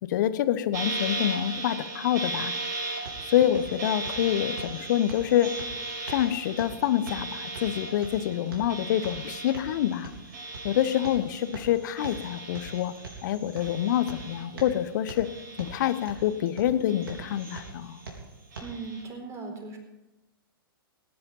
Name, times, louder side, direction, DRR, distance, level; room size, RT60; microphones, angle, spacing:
voice 1, 0.0-2.5 3.3-5.5 6.1-10.1 10.6-12.9 13.2-15.3 15.6-18.0, left 11 dB, 50° left, 13 dB, 1.0 m, -26 dB
sound 1, 0.7-13.3 13.6-14.8 15.2-16.5 16.9-17.9 18.5-19.0, right 2 dB, 50° right, 4.9 m, -37 dB
sound 2, 2.6-18.6, right 3 dB, 80° right, 4.0 m, -45 dB
voice 2, 18.6-19.8, right 4 dB, 25° right, 3 dB, 4.3 m, -38 dB
18.0 x 10.5 x 5.6 m, 1.0 s
figure-of-eight pair, 110°, 12 cm